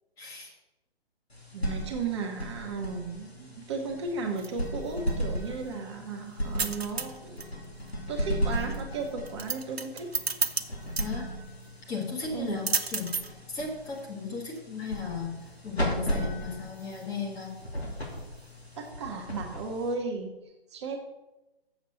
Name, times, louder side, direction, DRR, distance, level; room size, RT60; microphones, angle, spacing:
voice 1, 0.2-0.5 11.0-11.3 11.9-13.1 13.5-15.4 15.6-17.5, left 5 dB, 10° left, -2 dB, 1.2 m, -36 dB
sound 1, 1.3-20.2, equal, 90° left, 2.7 m, -36 dB
voice 2, 1.5-7.7 8.1-10.1 12.3-12.6 18.8-20.3 20.7-21.0, right 4 dB, 25° right, 2 dB, 1.1 m, -35 dB
sound 2, 4.1-18.9, right 4 dB, 80° right, 0.8 m, -37 dB
7.2 x 7.1 x 6.6 m, 1.0 s
figure-of-eight pair, 135°, 31 cm